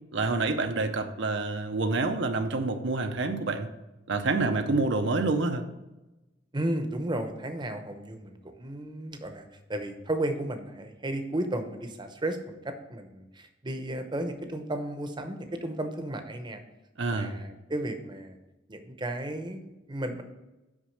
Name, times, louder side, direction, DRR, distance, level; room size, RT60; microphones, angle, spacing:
voice 1, 0.1-3.7 4.1-5.6 17.0-17.4, right 3 dB, 70° right, 6 dB, 0.7 m, -27 dB
voice 2, 6.5-13.2 13.6-16.6 17.1-18.3 18.7-20.2, right 1 dB, 25° right, 7 dB, 0.8 m, -34 dB
6.1 x 5.2 x 6.4 m, 1.0 s
head